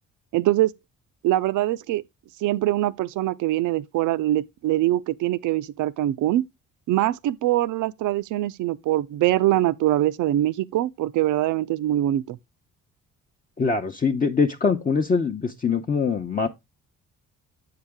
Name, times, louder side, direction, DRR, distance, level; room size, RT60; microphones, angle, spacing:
voice 1, 0.3-0.7 1.2-2.0 2.4-6.4 6.9-12.4, right 14 dB, 80° right, 0.6 m, -23 dB
voice 2, 13.6-16.5, left 5 dB, 30° left, 0.7 m, -23 dB
7.8 x 5.7 x 3.6 m
cardioid pair, 90°, 30 cm